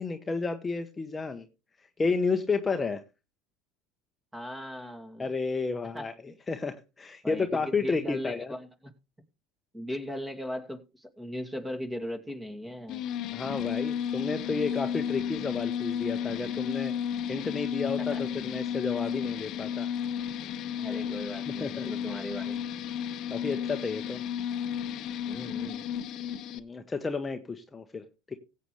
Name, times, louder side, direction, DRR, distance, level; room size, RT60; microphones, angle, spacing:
voice 1, 0.0-1.5 2.0-3.0 5.2-8.5 13.3-16.9 17.3-19.9 21.6-21.8 23.3-24.2 26.6-28.3, left 4 dB, 20° left, 1.1 m, -31 dB
voice 2, 4.3-5.2 5.9-6.4 7.2-8.9 9.7-13.0 18.1-18.2 20.8-22.6 25.3-25.8, equal, 10° right, 2.5 m, -38 dB
sound 1, 12.9-26.6, left 8 dB, 50° left, 0.9 m, -33 dB
16.5 x 7.8 x 3.3 m
supercardioid pair, 100°, 0 cm